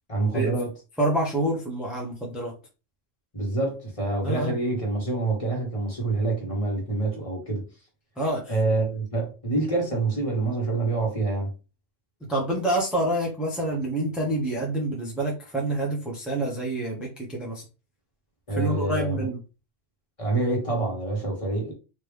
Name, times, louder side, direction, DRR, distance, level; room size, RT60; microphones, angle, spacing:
voice 1, 0.1-0.7 3.3-7.6 8.5-11.5 18.5-19.3 20.2-21.7, right 3 dB, 30° left, 1.5 m, -26 dB
voice 2, 1.0-2.5 4.2-4.5 8.2-8.5 12.3-17.6 18.6-19.4, right 1 dB, ahead, 0.8 m, -27 dB
3.5 x 2.9 x 3.3 m
omnidirectional pair, 1.2 m